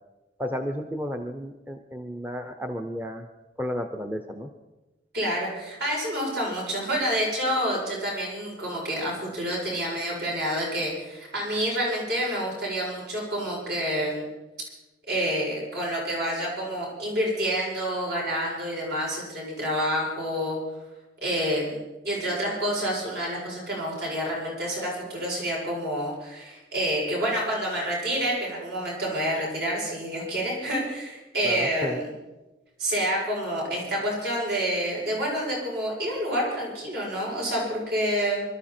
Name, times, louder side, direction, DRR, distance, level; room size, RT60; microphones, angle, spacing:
voice 1, 0.4-3.2 3.6-4.5 31.4-32.0, equal, 10° right, 5 dB, 0.7 m, -32 dB
voice 2, 5.1-14.3 15.1-20.6 21.2-32.1 32.8-38.4, equal, 65° right, -4 dB, 7.8 m, -28 dB
25.0 x 13.0 x 4.4 m, 1.1 s
head